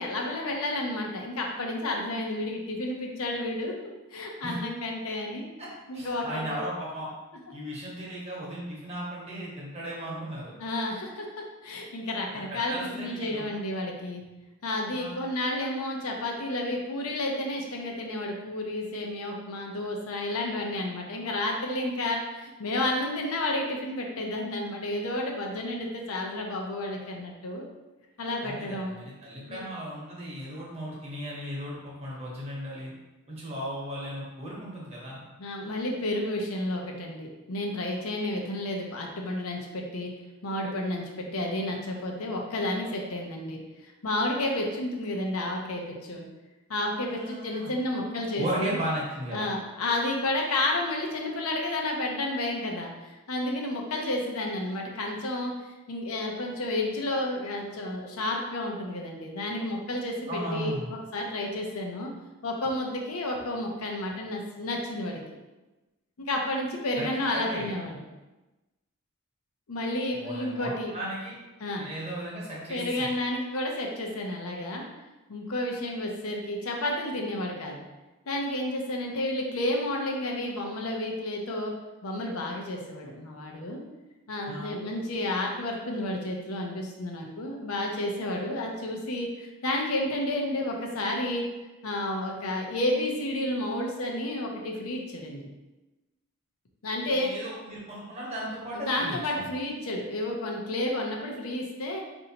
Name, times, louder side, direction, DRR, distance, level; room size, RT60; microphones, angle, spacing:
voice 1, 0.0-3.7 4.1-5.5 5.9-6.6 10.6-14.2 14.6-27.6 28.2-28.9 29.5-29.6 35.4-40.1 40.4-43.6 44.0-46.3 46.7-48.8 49.3-62.1 62.4-65.2 66.2-68.0 69.7-70.9 71.6-71.9 72.7-74.8 75.3-77.8 78.3-81.7 82.0-83.8 84.3-91.5 91.8-95.5 96.8-97.3 98.7-102.0, left 1 dB, 75° left, 1 dB, 0.6 m, -31 dB
voice 2, 5.9-7.1 7.5-10.6 12.3-13.4 14.9-15.2 28.4-32.9 33.3-35.3 47.1-47.7 48.4-49.5 60.3-60.9 67.0-67.1 67.3-67.7 70.1-71.4 71.8-73.1 84.4-84.7 97.0-99.5, right 1 dB, 30° right, -5 dB, 1.0 m, -36 dB
4.3 x 2.6 x 2.8 m, 1.1 s
head